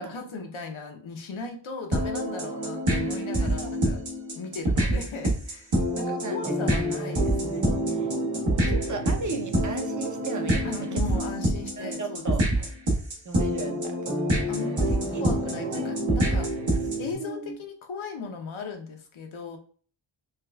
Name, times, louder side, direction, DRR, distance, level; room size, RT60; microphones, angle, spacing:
voice 1, 0.0-4.0 4.3-7.7 10.6-12.7 14.5-16.5 17.0-19.6, left 4 dB, 85° left, 3 dB, 0.8 m, -37 dB
sound 1, 1.9-17.1, right 1 dB, 70° right, 1.2 m, -26 dB
voice 2, 3.4-3.7 6.0-6.9 7.9-8.1 8.3-11.3 11.8-12.5 13.2-14.0 14.6-15.9 16.2-16.3 17.2-17.6, right 4 dB, 40° right, 5 dB, 0.6 m, -36 dB
4.6 x 2.3 x 2.2 m, 0.43 s
wide cardioid pair, 95°, 46 cm